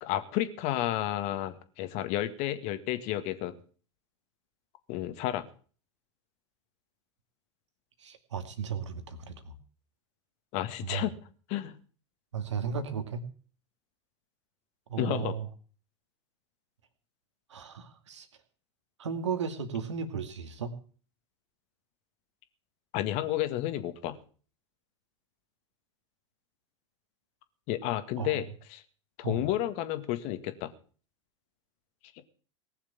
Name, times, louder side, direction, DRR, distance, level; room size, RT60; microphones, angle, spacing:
voice 1, 0.0-3.5 4.9-5.4 10.5-11.1 11.5-11.8 15.0-15.4 22.9-24.2 27.7-28.8 29.2-30.7, left 13 dB, 45° left, 10 dB, 1.9 m, -31 dB
voice 2, 8.0-9.5 10.8-11.1 12.3-13.2 14.9-15.5 17.5-18.3 19.0-20.7 28.2-28.4 29.2-29.5, right 6 dB, 70° right, 9 dB, 2.2 m, -35 dB
19.0 x 7.2 x 8.7 m, 0.42 s
figure-of-eight pair, 90°, 15 cm